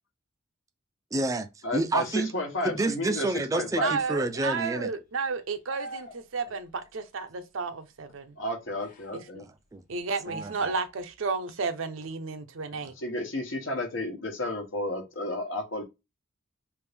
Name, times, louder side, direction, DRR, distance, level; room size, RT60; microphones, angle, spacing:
voice 1, 1.1-2.3 2.6-4.9 9.4-9.8 10.3-10.7 12.8-12.9, right 2 dB, 15° right, 0.3 m, -29 dB
voice 2, 1.6-3.9 8.4-9.4 13.0-15.8, left 1 dB, 70° left, 1.0 m, -32 dB
voice 3, 3.8-8.3 9.1-9.2 9.9-12.9, right 4 dB, 80° right, 0.6 m, -32 dB
sound 1, 4.3-4.9 5.7-6.2 8.8-9.2 10.2-11.0, right 2 dB, 45° left, 0.7 m, -42 dB
3.4 x 2.5 x 3.3 m
head